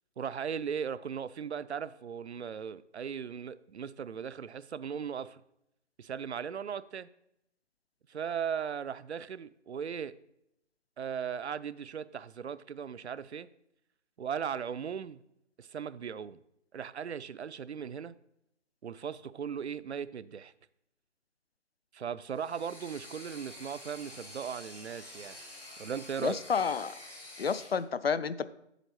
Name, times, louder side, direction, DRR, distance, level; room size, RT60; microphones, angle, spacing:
voice 1, 0.2-5.4 6.0-7.1 8.1-10.1 11.0-13.5 14.2-15.2 15.6-16.4 16.7-18.1 18.8-20.5 21.9-25.4 25.8-26.4, right 7 dB, 70° right, 0.5 m, -38 dB
sound 1, 22.3-27.8, left 1 dB, 85° left, 3.4 m, -48 dB
voice 2, 26.2-27.0 27.4-28.5, left 6 dB, 60° left, 0.5 m, -30 dB
8.2 x 7.1 x 4.3 m
figure-of-eight pair, 155°, 35 cm